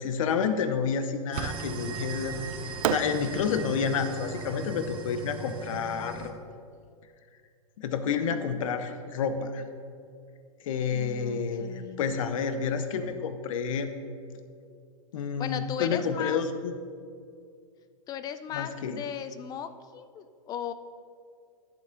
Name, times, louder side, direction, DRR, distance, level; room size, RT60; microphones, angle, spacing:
voice 1, 0.0-2.4 2.6-6.3 7.8-9.6 10.6-13.9 15.1-16.7 18.5-19.0, left 6 dB, 65° left, 9 dB, 0.8 m, -29 dB
sound 1, 1.3-6.3, right 4 dB, 30° right, 1.0 m, -39 dB
Fireworks, 1.4-2.0 2.8-6.0, right 11 dB, 65° right, 0.4 m, -35 dB
voice 2, 10.9-12.2 15.4-16.4 18.1-20.7, left 8 dB, 20° left, 11 dB, 0.4 m, -37 dB
11.0 x 7.2 x 3.8 m, 2.3 s
hypercardioid pair, 125°, 18 cm